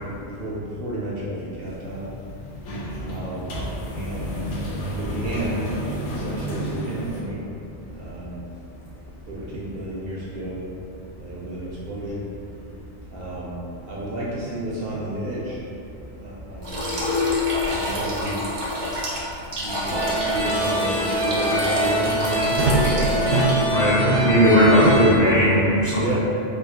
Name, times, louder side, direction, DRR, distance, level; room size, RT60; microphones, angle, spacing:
voice 1, 0.0-2.1 3.0-3.6 3.9-4.3 4.9-5.6 6.1-7.4 7.9-8.4 9.3-10.6 11.2-12.3 13.1-15.6 16.2-17.1 17.7-18.4 19.6-23.0 26.0-26.2, right 1 dB, 65° right, -6 dB, 0.7 m, -32 dB
sound 1, 1.8-7.2, equal, 80° left, 0.9 m, -31 dB
sound 2, 16.6-23.8, left 1 dB, 45° right, 0.3 m, -27 dB
sound 3, 19.9-25.1, right 1 dB, 85° right, 1.1 m, -22 dB
voice 2, 23.7-26.0, equal, 40° left, -11 dB, 0.8 m, -17 dB
3.0 x 2.5 x 2.7 m, 2.7 s
omnidirectional pair, 1.2 m